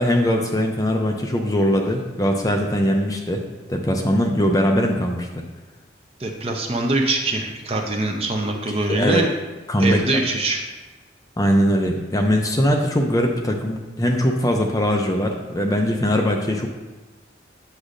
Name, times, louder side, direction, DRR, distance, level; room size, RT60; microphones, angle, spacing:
voice 1, 0.0-3.4 3.7-5.4 8.7-9.2 9.7-10.0 11.4-16.7, equal, 20° left, 2 dB, 0.5 m, -21 dB
voice 2, 6.2-9.3 9.8-10.6, right 2 dB, 30° right, 3 dB, 0.6 m, -23 dB
8.1 x 6.0 x 2.5 m, 1.2 s
head